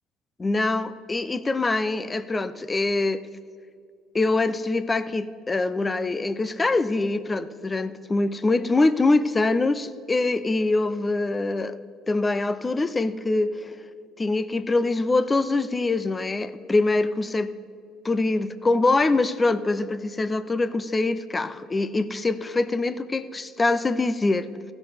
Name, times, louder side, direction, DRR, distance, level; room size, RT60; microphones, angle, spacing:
voice 1, 0.4-3.2 4.1-11.8 12.1-13.8 14.2-17.5 18.0-24.7, left 2 dB, 25° left, 14 dB, 0.5 m, -24 dB
16.0 x 6.7 x 4.2 m, 2.4 s
hypercardioid pair, 65°, 0 cm